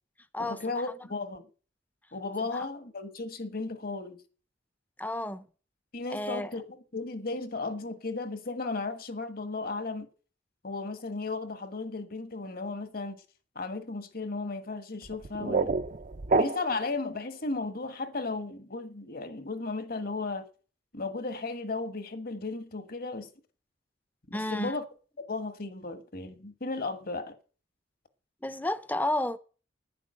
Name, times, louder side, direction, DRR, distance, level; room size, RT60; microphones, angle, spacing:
voice 1, 0.4-1.4 2.1-4.2 5.9-10.1 10.6-13.2 13.5-15.8 16.3-20.5 20.9-23.3 24.3-24.8 25.3-27.4, left 3 dB, 50° left, 1.4 m, -35 dB
voice 2, 5.0-5.5 6.1-6.5 24.3-24.7 28.4-29.4, left 1 dB, 10° left, 0.7 m, -31 dB
sound 1, 15.0-17.0, right 3 dB, 45° right, 0.6 m, -28 dB
11.0 x 10.0 x 7.7 m
head